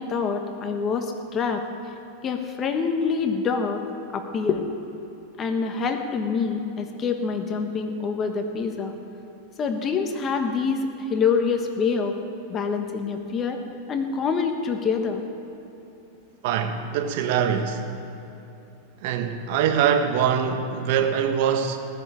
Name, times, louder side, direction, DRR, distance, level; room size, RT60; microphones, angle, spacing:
voice 1, 0.0-1.6 2.2-3.8 4.1-4.7 5.4-9.0 9.6-12.1 12.5-13.6 13.9-15.2, left 5 dB, 30° left, 6 dB, 1.4 m, -26 dB
voice 2, 16.4-17.8 19.0-21.8, right 8 dB, 60° right, 6 dB, 1.4 m, -23 dB
18.5 x 6.9 x 8.5 m, 2.9 s
hypercardioid pair, 100°, 0 cm